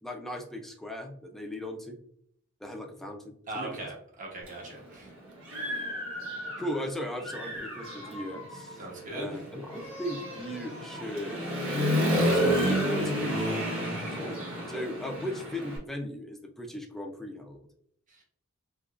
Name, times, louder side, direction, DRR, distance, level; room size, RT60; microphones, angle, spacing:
voice 1, 0.0-2.0 2.6-3.9 6.6-8.8 9.1-11.5 11.8-14.4 14.7-17.6, left 1 dB, ahead, 2 dB, 0.4 m, -37 dB
voice 2, 3.5-5.1 8.8-9.4 18.1-18.2, right 2 dB, 40° right, -1 dB, 1.0 m, -39 dB
Human voice / Motorcycle, 4.5-4.6 5.1-6.8 7.2-15.8, equal, 80° right, 1.2 m, -31 dB
3.5 x 2.9 x 2.4 m, 0.67 s
head